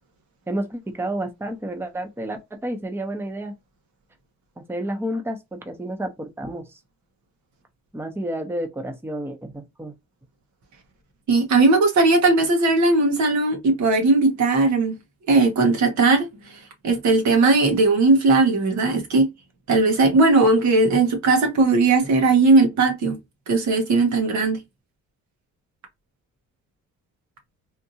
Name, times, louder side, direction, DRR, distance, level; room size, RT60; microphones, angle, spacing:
voice 1, 0.5-3.5 4.6-6.8 7.9-9.9, right 1 dB, 10° right, 0.8 m, -30 dB
voice 2, 11.3-15.0 15.3-16.2 16.8-19.3 19.7-23.2 23.5-24.6, right 3 dB, 70° right, 1.4 m, -18 dB
3.6 x 2.6 x 2.8 m
cardioid pair, 90°, 30 cm